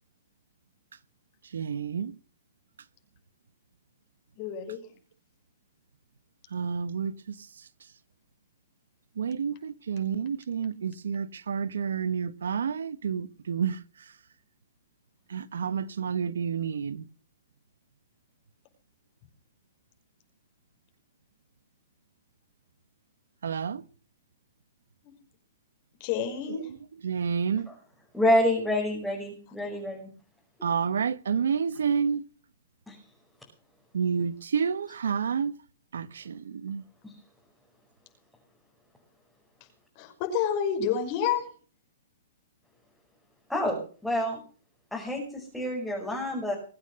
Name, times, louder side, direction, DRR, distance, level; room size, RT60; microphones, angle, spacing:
voice 1, 1.5-2.1 6.5-7.1 9.2-13.7 15.3-17.0 23.4-23.8 27.0-27.7 30.6-32.2 33.9-35.5 35.9-36.8, right 6 dB, 80° right, 1.2 m, -29 dB
voice 2, 4.4-4.8 25.0-25.1 26.0-26.7 29.6-29.8 40.0-41.5, left 8 dB, 40° left, 5.6 m, -29 dB
voice 3, 28.1-30.1 32.9-33.0 43.5-44.4 44.9-46.5, left 1 dB, ahead, 5.5 m, -27 dB
22.0 x 8.9 x 6.5 m
hypercardioid pair, 135°, 0 cm